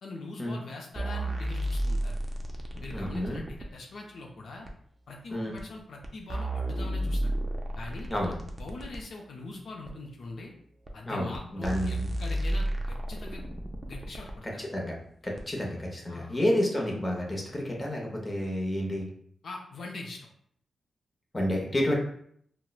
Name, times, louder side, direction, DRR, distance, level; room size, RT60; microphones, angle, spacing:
voice 1, 0.0-2.1 2.8-4.7 5.1-7.3 7.7-8.1 8.6-10.5 10.9-13.5 13.8-14.6 16.1-16.4 19.4-20.3, left 2 dB, 65° left, 0 dB, 0.5 m, -42 dB
sound 1, 1.0-3.7 4.7-4.8 5.6-5.7 6.0-9.0 9.9-10.0 10.9-11.0 11.3-11.4 11.6-14.4 15.4-15.5, right 1 dB, 20° right, 0.4 m, -32 dB
voice 2, 2.9-3.4 5.3-5.6 8.1-8.3 11.0-12.1 14.6-15.0 15.2-19.1 21.3-21.9, left 1 dB, 15° left, -1 dB, 0.7 m, -30 dB
4.4 x 2.0 x 2.3 m, 0.65 s
wide cardioid pair, 135°, 0 cm